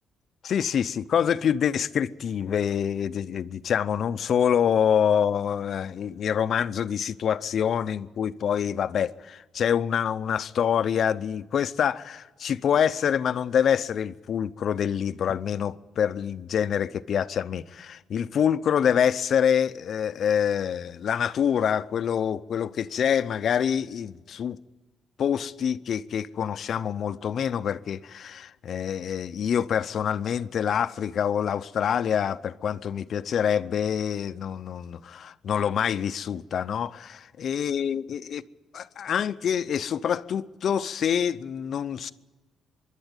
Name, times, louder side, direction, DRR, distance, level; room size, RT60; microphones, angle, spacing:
voice 1, 0.4-24.6 25.2-38.4 38.7-42.1, left 8 dB, 60° left, 0.6 m, -26 dB
25.0 x 11.5 x 9.0 m
cardioid pair, 90°, 0 cm